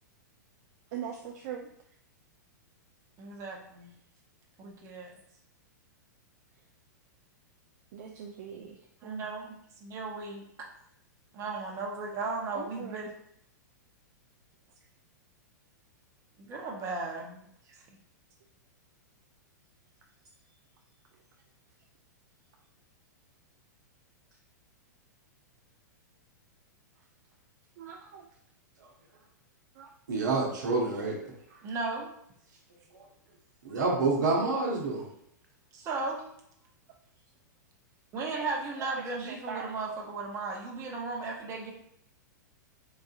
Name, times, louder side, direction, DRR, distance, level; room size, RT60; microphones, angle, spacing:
voice 1, 0.9-1.7 7.9-9.3 12.5-13.1 27.8-28.3 29.7-29.9 31.3-31.7 35.8-36.0 38.3-38.4 38.8-38.9 39.2-39.7, right 8 dB, 55° right, 1 dB, 0.4 m, -42 dB
voice 2, 3.2-3.9 4.6-5.1 9.0-10.7 11.3-13.1 16.4-17.8 31.6-32.1 35.7-36.2 38.1-41.7, right 3 dB, 30° right, 0 dB, 0.8 m, -36 dB
voice 3, 30.1-31.2 32.9-33.0 33.6-35.0, right 3 dB, 70° right, 0 dB, 1.0 m, -28 dB
3.9 x 2.5 x 2.4 m, 0.72 s
hypercardioid pair, 110°, 10 cm